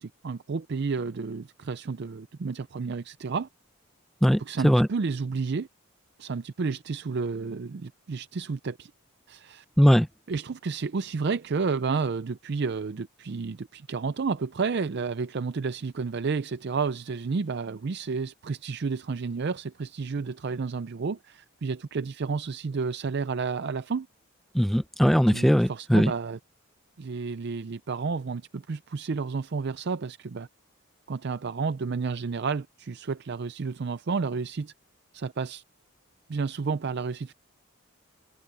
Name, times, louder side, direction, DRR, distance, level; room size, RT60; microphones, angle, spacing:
voice 1, 0.0-3.5 4.4-5.7 6.2-8.9 9.3-9.6 10.3-24.1 25.3-26.4 27.0-30.5 31.1-34.7 35.1-35.6 36.3-37.3, right 4 dB, 50° right, 0.4 m, -31 dB
voice 2, 4.2-4.9 9.8-10.1 24.5-26.1, equal, ahead, 0.7 m, -20 dB
head